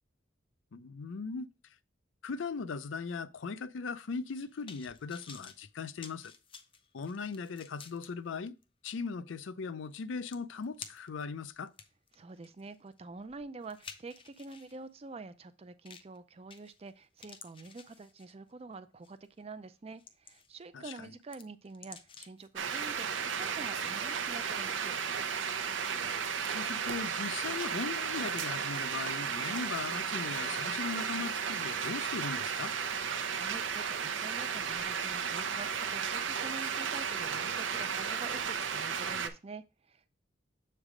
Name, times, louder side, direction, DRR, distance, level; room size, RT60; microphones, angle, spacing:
voice 1, 0.7-1.5 2.2-6.3 6.9-8.5 8.8-11.7 20.7-21.1 26.5-32.7, left 5 dB, 90° left, 0.5 m, -39 dB
sound 1, 4.1-8.1 8.6-8.7 9.9-10.0 10.3-11.2 11.7-14.8 15.9-16.2 16.5-16.9 17.2-18.5 19.0-19.3 19.7-20.6 20.9-22.5 22.8-22.9, left 6 dB, 30° left, 0.6 m, -52 dB
voice 2, 12.1-23.1 23.4-25.0 33.3-40.1, right 3 dB, 30° right, 0.4 m, -47 dB
sound 2, 22.6-39.3, right 6 dB, 80° right, 0.6 m, -34 dB
7.3 x 3.3 x 4.9 m
head